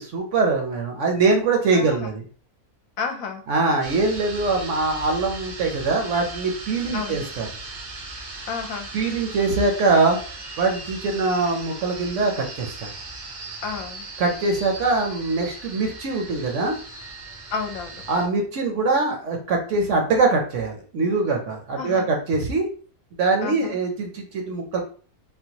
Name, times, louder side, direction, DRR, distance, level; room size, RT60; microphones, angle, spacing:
voice 1, 0.0-2.2 3.5-7.5 8.9-10.2 10.6-12.9 14.2-16.8 18.1-22.7 23.2-24.8, right 3 dB, 65° right, 2 dB, 0.9 m, -23 dB
voice 2, 1.7-2.1 3.0-3.4 6.9-7.2 8.5-8.9 13.6-14.1 17.5-18.0 21.7-22.1 23.4-23.8, left 5 dB, 70° left, 5 dB, 1.0 m, -31 dB
sound 1, 3.8-18.3, right 2 dB, 90° right, 1.3 m, -38 dB
3.7 x 2.2 x 2.8 m, 0.41 s
omnidirectional pair, 1.6 m